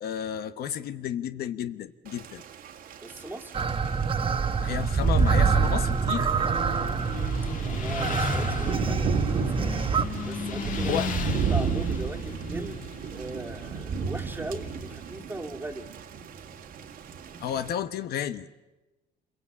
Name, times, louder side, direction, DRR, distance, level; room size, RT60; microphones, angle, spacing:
voice 1, 0.0-2.4 4.6-6.3 10.9-11.1 17.4-18.5, left 9 dB, 65° left, 11 dB, 1.1 m, -32 dB
Thunder / Rain, 2.1-17.7, right 6 dB, 60° right, 2.0 m, -34 dB
voice 2, 3.0-3.7 7.6-9.8 10.3-11.0 11.3-15.9, right 2 dB, 10° right, 2 dB, 2.1 m, -39 dB
sound 1, 3.5-10.0, right 5 dB, 30° right, 1.3 m, -26 dB
Motorcycle, 5.2-14.9, left 5 dB, 50° left, 2.3 m, -36 dB
27.5 x 22.5 x 8.5 m, 1.1 s
cardioid pair, 110°, 17 cm